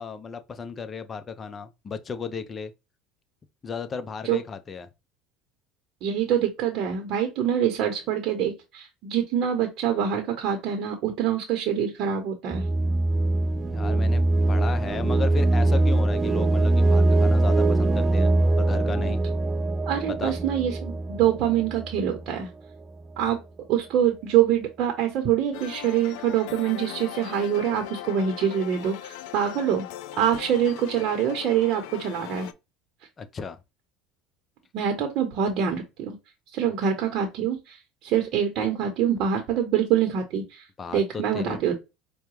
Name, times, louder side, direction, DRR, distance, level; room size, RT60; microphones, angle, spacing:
voice 1, 0.0-2.7 3.6-4.9 13.7-14.2 14.5-19.2 20.1-20.4 33.2-33.6 40.8-41.6, left 5 dB, 30° left, 0.6 m, -34 dB
voice 2, 6.0-12.6 19.9-22.5 23.2-23.4 23.7-29.8 30.2-32.5 34.7-36.2 36.5-40.6 40.9-41.7, right 9 dB, 60° right, 0.8 m, -25 dB
sound 1, 12.5-22.3, right 2 dB, 20° right, 0.3 m, -22 dB
sound 2, 25.5-32.5, left 13 dB, 75° left, 0.4 m, -39 dB
4.7 x 2.2 x 3.0 m
supercardioid pair, 100°, 0 cm